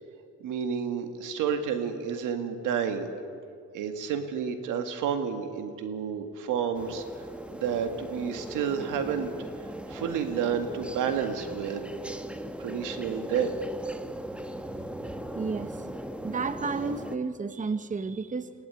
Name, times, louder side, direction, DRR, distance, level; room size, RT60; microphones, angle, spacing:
voice 1, 0.4-3.1 3.7-7.0 7.5-9.3 9.9-11.8 12.6-13.5, right 7 dB, 90° right, 7 dB, 1.9 m, -30 dB
sound 1, 6.7-17.2, equal, 5° right, 1.2 m, -39 dB
voice 2, 15.0-15.9 16.2-18.5, right 4 dB, 25° right, 12 dB, 1.0 m, -32 dB
20.5 x 16.5 x 9.5 m, 2.4 s
cardioid pair, 90°, 30 cm